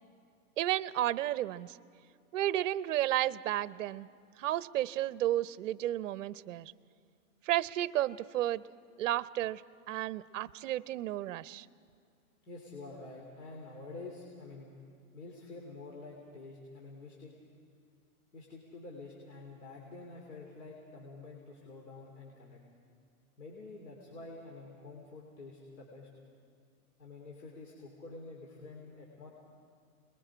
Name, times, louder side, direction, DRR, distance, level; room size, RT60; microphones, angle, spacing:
voice 1, 0.6-1.8 2.3-4.1 4.4-6.7 7.4-8.6 9.0-9.6 9.9-11.7, right 13 dB, 55° right, 18 dB, 0.7 m, -32 dB
voice 2, 12.5-14.7 15.1-17.3 18.3-22.6 23.4-26.1 27.0-29.3, left 3 dB, 80° left, -2 dB, 3.8 m, -48 dB
29.0 x 21.5 x 5.0 m, 2.3 s
hypercardioid pair, 150°, 45 cm